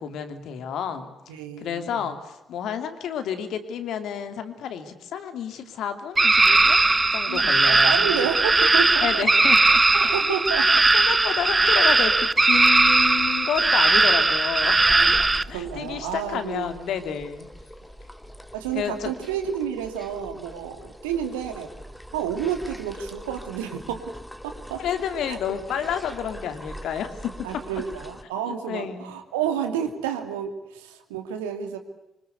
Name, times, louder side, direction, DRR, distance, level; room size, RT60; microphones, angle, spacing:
voice 1, 0.0-1.2 1.6-6.8 7.1-7.9 9.0-9.8 10.9-14.8 15.5-17.5 18.7-19.1 24.8-27.8 28.5-29.1, left 8 dB, 60° left, 8 dB, 2.8 m, -30 dB
voice 2, 1.3-2.1 7.1-9.3 9.9-10.8 14.9-16.7 18.5-21.7 22.1-24.0 24.4-24.8 25.3-25.4 27.4-31.8, right 8 dB, 75° right, 6 dB, 2.6 m, -30 dB
sound 1, 6.2-15.4, right 3 dB, 25° right, 0.9 m, -19 dB
sound 2, 14.8-28.2, equal, 5° left, 2.4 m, -42 dB
25.5 x 25.0 x 8.2 m, 0.92 s
figure-of-eight pair, 40°, 0 cm